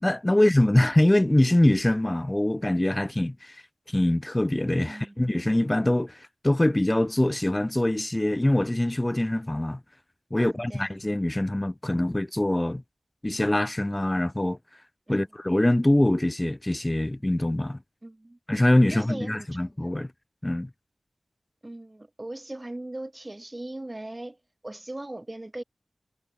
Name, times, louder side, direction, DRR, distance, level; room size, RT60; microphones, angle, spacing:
voice 1, 0.0-3.6 3.9-6.2 6.4-9.8 10.3-12.8 13.2-14.6 15.1-17.8 18.5-20.1 20.4-20.7, left 1 dB, 20° left, 0.4 m, -23 dB
voice 2, 4.8-5.4 10.4-10.9 15.1-15.3 18.0-18.4 18.9-19.9 21.6-24.4 24.6-25.6, right 1 dB, 30° right, 1.1 m, -39 dB
wide cardioid pair, 50°, 0 cm